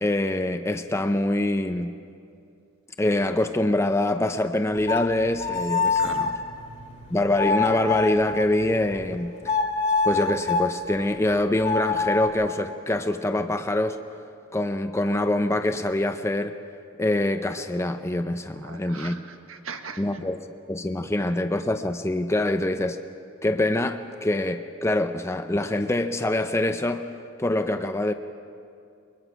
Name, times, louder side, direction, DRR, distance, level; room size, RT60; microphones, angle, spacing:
voice 1, 0.0-2.0 3.0-6.4 7.1-9.5 10.0-14.0 14.5-16.6 17.0-19.2 20.0-23.0 23.4-27.1 27.4-28.1, left 1 dB, 15° left, 7 dB, 0.6 m, -25 dB
sound 1, 4.7-9.1 9.5-10.7 11.6-12.3, left 4 dB, 35° left, 2.1 m, -26 dB
voice 2, 5.9-6.3 18.6-19.2 19.5-20.0, right 5 dB, 75° right, 7 dB, 1.3 m, -38 dB
22.5 x 21.0 x 5.9 m, 2.4 s
head